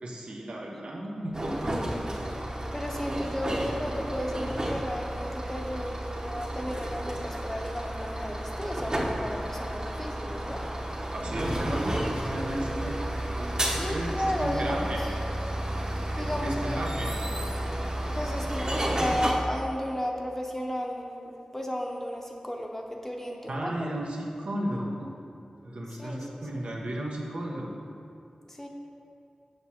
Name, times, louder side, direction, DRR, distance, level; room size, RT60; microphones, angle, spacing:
voice 1, 0.0-1.9 11.1-13.0 13.3-15.1 16.1-17.2 23.5-25.1 25.6-27.8, right 1 dB, 85° right, -2 dB, 0.9 m, -34 dB
sound 1, 1.3-19.3, right 1 dB, 35° right, 0.9 m, -32 dB
voice 2, 2.7-10.6 13.6-15.0 16.2-16.9 18.1-23.9 26.0-26.3 28.5-28.7, equal, 15° left, 0 dB, 0.8 m, -34 dB
7.7 x 6.1 x 2.8 m, 2.6 s
wide cardioid pair, 55°, 2 cm